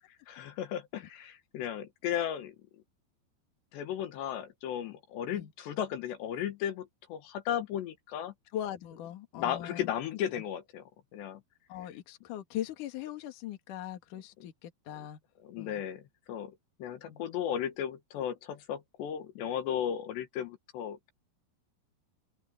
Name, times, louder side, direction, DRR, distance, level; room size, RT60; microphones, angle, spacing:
voice 1, 0.3-2.6 3.7-8.3 9.3-10.8 11.1-11.4 15.4-16.6 16.8-21.1, left 10 dB, 75° left, 3.7 m, -35 dB
voice 2, 8.5-9.9 11.7-15.2 15.6-15.8 17.0-17.2, left 12 dB, 55° left, 3.0 m, -40 dB
open air
omnidirectional pair, 5.1 m